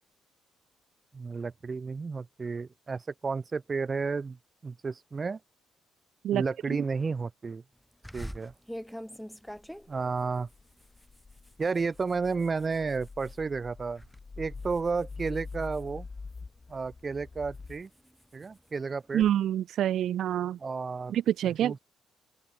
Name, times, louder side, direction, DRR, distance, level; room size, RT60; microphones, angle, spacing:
voice 1, 1.1-4.4 4.6-5.4 6.3-7.6 8.1-8.5 9.9-10.5 11.6-14.0 14.4-16.1 16.7-17.9 18.3-19.2 20.6-21.1 21.6-21.8, right 4 dB, 35° right, 1.4 m, -32 dB
sound 1, 8.0-13.4 13.8-14.2 14.6-16.6 17.1-19.3, equal, ahead, 1.9 m, -46 dB
sound 2, 9.5-17.8, left 4 dB, 30° left, 3.6 m, -45 dB
voice 2, 19.1-20.6 21.1-21.7, right 11 dB, 75° right, 0.3 m, -26 dB
open air
cardioid pair, 90°, 0 cm